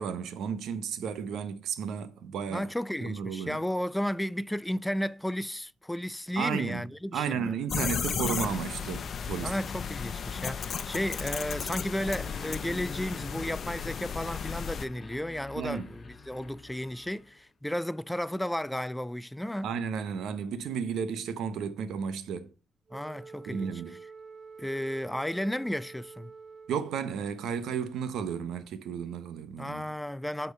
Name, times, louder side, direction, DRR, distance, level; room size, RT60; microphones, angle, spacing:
voice 1, 0.0-2.7 3.0-3.6 6.4-6.8 7.1-9.5 15.5-15.9 19.6-22.5 23.5-23.9 26.7-29.9, right 7 dB, 90° right, 1.0 m, -33 dB
voice 2, 2.5-7.5 9.4-19.7 22.9-23.7 24.6-26.3 29.6-30.5, equal, 5° left, 0.4 m, -33 dB
sound 1, 7.7-14.9, left 7 dB, 55° left, 0.8 m, -34 dB
sound 2, 12.1-17.5, left 4 dB, 35° left, 1.1 m, -46 dB
Wind instrument woodwind instrument, 22.9-27.3, right 5 dB, 45° right, 0.6 m, -48 dB
8.3 x 4.4 x 5.5 m
cardioid pair, 105°, 0 cm